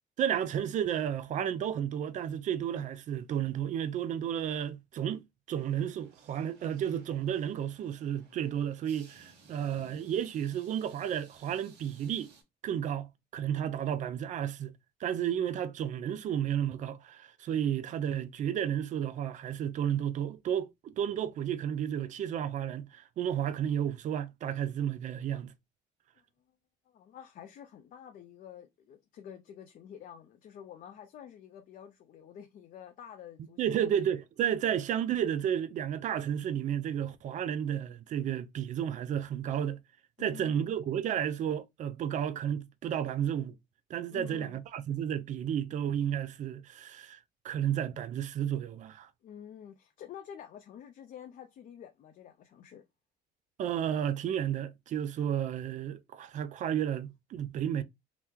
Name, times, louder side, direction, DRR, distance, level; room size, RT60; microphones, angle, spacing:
voice 1, 0.2-12.3 12.6-14.7 15.0-25.5 33.6-39.8 40.2-43.6 43.9-47.2 47.4-49.1 53.6-57.8, right 9 dB, 45° right, 0.4 m, -32 dB
sound 1, 5.6-12.4, right 5 dB, 85° right, 1.1 m, -59 dB
voice 2, 26.9-33.9 40.2-40.7 44.1-44.6 49.2-52.8, left 9 dB, 55° left, 0.5 m, -49 dB
2.9 x 2.1 x 3.5 m
cardioid pair, 110°, 17 cm